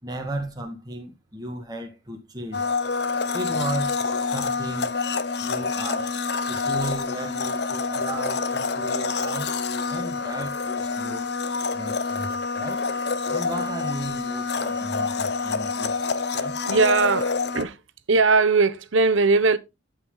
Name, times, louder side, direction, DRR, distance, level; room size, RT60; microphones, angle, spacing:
voice 1, 0.0-2.7 3.3-5.0 5.4-6.2 6.5-9.5 9.9-11.4 11.7-12.9 13.3-16.6, right 1 dB, 20° right, 2.0 m, -35 dB
Domestic sounds home sounds, 2.5-17.6, left 4 dB, 55° left, 0.9 m, -27 dB
voice 2, 16.3-17.8 18.1-19.6, right 4 dB, 90° right, 0.9 m, -20 dB
12.5 x 5.6 x 3.9 m
head